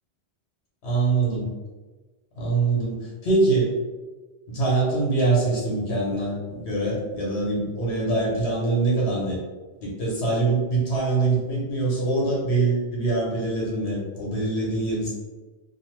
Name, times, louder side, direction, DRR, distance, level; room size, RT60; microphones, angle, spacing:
voice 1, 0.8-1.5 2.4-3.8 4.5-9.4 9.8-15.1, right 3 dB, 90° left, -5 dB, 1.3 m, -24 dB
2.6 x 2.4 x 3.1 m, 1.3 s
omnidirectional pair, 1.1 m